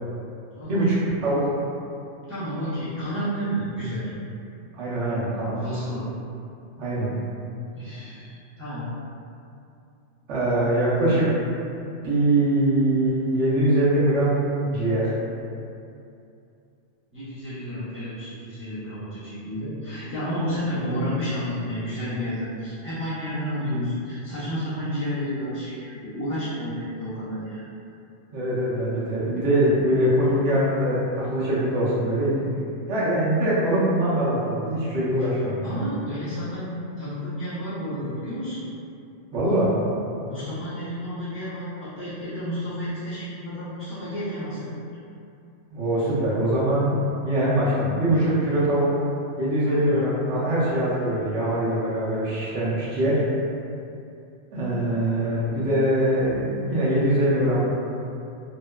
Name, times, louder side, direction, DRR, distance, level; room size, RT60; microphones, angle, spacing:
voice 1, 0.6-1.5 4.7-5.6 6.8-7.1 10.3-11.3 12.0-15.1 28.3-32.5 32.9-35.6 39.3-39.7 45.7-46.9 47.2-48.9 49.4-53.2 54.5-57.6, right 1 dB, 75° right, -8 dB, 1.0 m, -22 dB
voice 2, 2.3-4.1 5.6-6.1 7.7-8.9 17.1-27.7 35.3-38.7 40.3-44.9 49.6-49.9, equal, 15° right, -14 dB, 0.6 m, -31 dB
2.7 x 2.1 x 2.2 m, 2.6 s
omnidirectional pair, 1.2 m